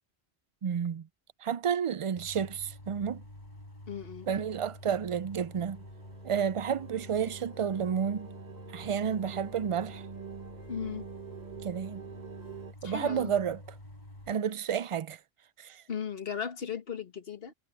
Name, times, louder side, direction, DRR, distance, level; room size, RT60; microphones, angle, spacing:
voice 1, 0.6-1.1 1.4-3.2 4.3-5.8 6.2-8.3 8.7-10.0 11.6-12.0 12.8-13.6 14.3-15.2 15.6-15.8, right 7 dB, 60° right, 0.3 m, -31 dB
sound 1, 2.1-14.3, left 1 dB, 45° left, 4.7 m, -48 dB
voice 2, 3.9-4.3 10.7-11.0 12.8-13.3 15.9-17.5, left 7 dB, 65° left, 1.7 m, -36 dB
sound 2, 5.2-12.7, right 7 dB, 45° right, 1.0 m, -47 dB
Synth arpegio delay, 6.7-12.7, left 2 dB, 85° left, 2.7 m, -58 dB
omnidirectional pair, 1.1 m